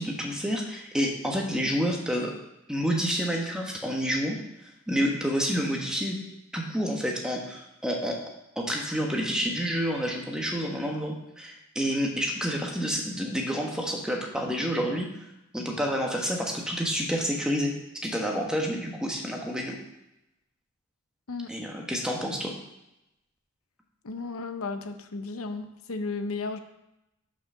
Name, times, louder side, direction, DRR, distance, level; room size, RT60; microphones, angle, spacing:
voice 1, 0.0-2.3 2.7-4.4 4.9-6.2 6.5-8.2 8.6-15.1 15.5-17.7 18.0-19.7 21.5-22.5, equal, 5° right, 0 dB, 1.2 m, -29 dB
voice 2, 24.0-26.6, left 3 dB, 90° left, 8 dB, 0.8 m, -34 dB
7.0 x 5.6 x 6.2 m, 0.90 s
head